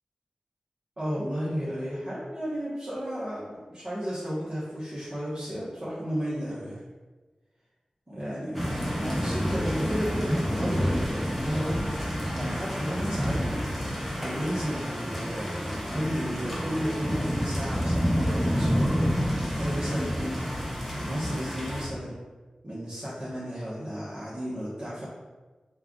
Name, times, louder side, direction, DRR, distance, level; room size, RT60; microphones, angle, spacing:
voice 1, 1.0-6.8 8.1-8.6 9.0-11.0 11.4-13.7 14.1-20.4 20.9-22.1 22.6-25.0, equal, 35° right, -11 dB, 1.2 m, -33 dB
sound 1, 8.5-21.8, equal, ahead, 0.8 m, -29 dB
3.3 x 2.4 x 3.7 m, 1.3 s
wide cardioid pair, 50°, 2 cm